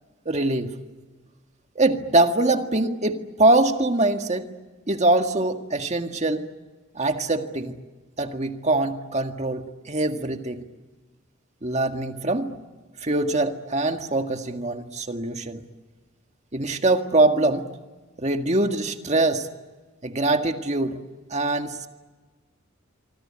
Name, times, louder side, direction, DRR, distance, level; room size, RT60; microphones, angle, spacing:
voice 1, 0.3-0.7 1.8-4.5 4.9-6.5 7.0-7.8 8.2-10.6 11.6-12.5 13.0-15.6 16.5-17.7 18.2-19.5 20.0-21.0 21.3-21.9, right 2 dB, 35° right, 6 dB, 1.9 m, -23 dB
26.0 x 25.0 x 8.8 m, 1.3 s
head